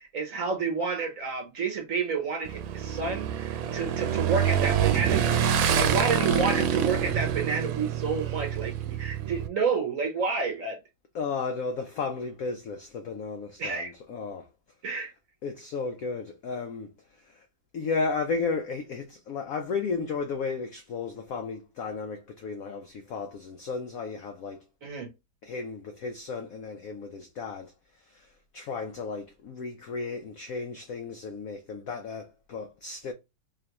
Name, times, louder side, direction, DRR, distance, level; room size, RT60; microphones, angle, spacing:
voice 1, 0.0-10.8 13.6-13.9 14.8-15.1 24.8-25.1, right 5 dB, 50° right, 1.1 m, -30 dB
Motorcycle / Engine, 2.5-9.5, right 9 dB, 90° right, 1.4 m, -26 dB
voice 2, 5.9-6.7 11.1-14.5 15.4-17.5 17.7-24.6 25.4-33.1, left 4 dB, 75° left, 0.7 m, -34 dB
3.7 x 3.2 x 2.9 m
omnidirectional pair, 2.1 m